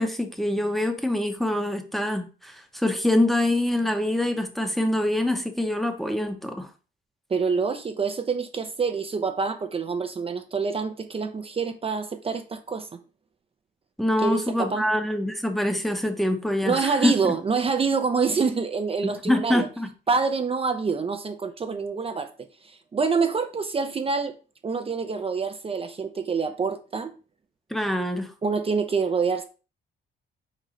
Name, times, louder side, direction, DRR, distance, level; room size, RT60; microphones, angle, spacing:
voice 1, 0.0-6.7 14.0-17.3 19.0-19.9 27.7-28.3, left 1 dB, ahead, 0.8 m, -25 dB
voice 2, 7.3-12.9 14.2-14.9 16.7-19.7 20.1-22.3 22.6-24.3 24.6-27.1 28.4-29.4, right 5 dB, 30° right, 0.5 m, -26 dB
4.5 x 3.8 x 3.1 m
cardioid pair, 90°, 20 cm